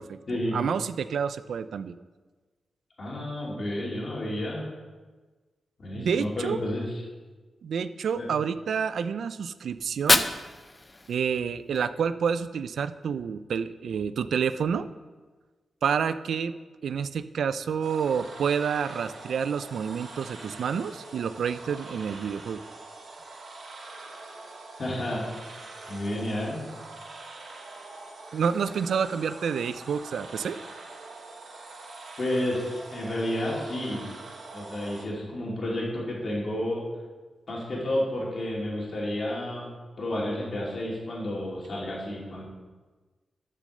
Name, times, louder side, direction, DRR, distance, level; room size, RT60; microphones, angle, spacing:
voice 1, 0.0-1.9 5.9-6.6 7.6-10.3 11.1-14.9 15.8-16.5 16.8-22.6 28.3-30.6, right 7 dB, 80° right, 13 dB, 0.3 m, -29 dB
voice 2, 3.0-4.7 5.8-6.9 8.2-8.3 24.8-25.3 25.9-26.7 32.2-34.1 34.5-36.8 37.5-42.4, left 1 dB, 45° left, -4 dB, 2.8 m, -31 dB
Fire, 9.8-11.8, left 2 dB, 20° left, 0.4 m, -27 dB
sound 1, 17.8-35.1, right 3 dB, 60° right, 1.3 m, -44 dB
7.8 x 6.4 x 6.5 m, 1.3 s
wide cardioid pair, 130°, 0 cm